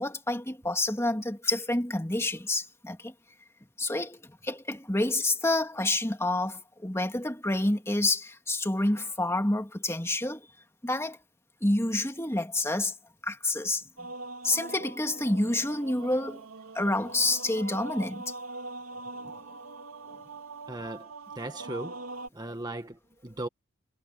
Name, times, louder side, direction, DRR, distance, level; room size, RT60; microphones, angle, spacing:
voice 1, 0.0-3.1 3.8-10.5 10.8-11.2 11.6-12.9 13.2-13.8 14.4-16.4 16.7-18.3, left 2 dB, 10° left, 2.5 m, -28 dB
sound 1, 14.0-22.3, right 3 dB, 75° right, 3.5 m, -42 dB
voice 2, 20.7-22.1 22.3-23.5, right 2 dB, 20° right, 1.7 m, -38 dB
head